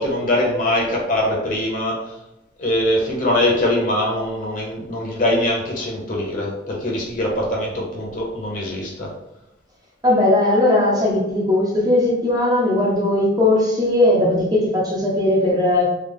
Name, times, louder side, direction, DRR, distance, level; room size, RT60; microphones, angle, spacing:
voice 1, 0.0-2.1 2.6-9.1, left 1 dB, 45° left, -2 dB, 1.0 m, -22 dB
voice 2, 10.0-15.9, left 1 dB, 20° right, -4 dB, 0.8 m, -18 dB
3.4 x 2.3 x 3.7 m, 0.91 s
head